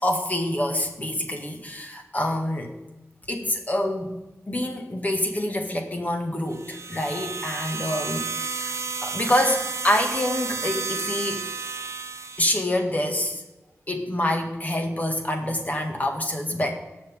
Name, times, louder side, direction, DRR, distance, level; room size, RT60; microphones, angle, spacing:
voice 1, 0.0-2.8 3.3-4.2 4.5-8.7 9.0-11.4 12.4-13.4 13.9-16.7, left 1 dB, 30° left, 3 dB, 1.9 m, -26 dB
sound 1, 6.5-12.7, right 5 dB, 65° right, 0.8 m, -32 dB
18.5 x 6.9 x 3.7 m, 1.1 s
wide cardioid pair, 90°, 5 cm